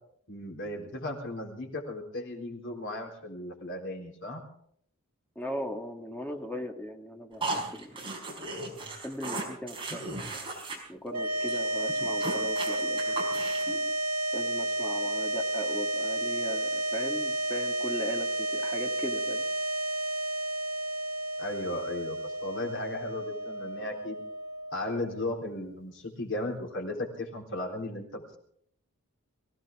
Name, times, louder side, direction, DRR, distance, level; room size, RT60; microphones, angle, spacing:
voice 1, 0.3-4.4 21.4-24.2 24.7-28.2, left 1 dB, 60° left, 1 dB, 3.8 m, -36 dB
voice 2, 5.4-8.1 9.0-13.3 14.3-19.5, left 1 dB, 5° left, 3 dB, 1.9 m, -39 dB
sound 1, 7.4-10.8 11.1-11.2 11.5-11.6 11.9-13.8, right 2 dB, 25° right, 4.9 m, -36 dB
sound 2, 11.1-25.5, right 1 dB, 80° right, 1.9 m, -31 dB
24.0 x 16.5 x 3.6 m, 0.65 s
head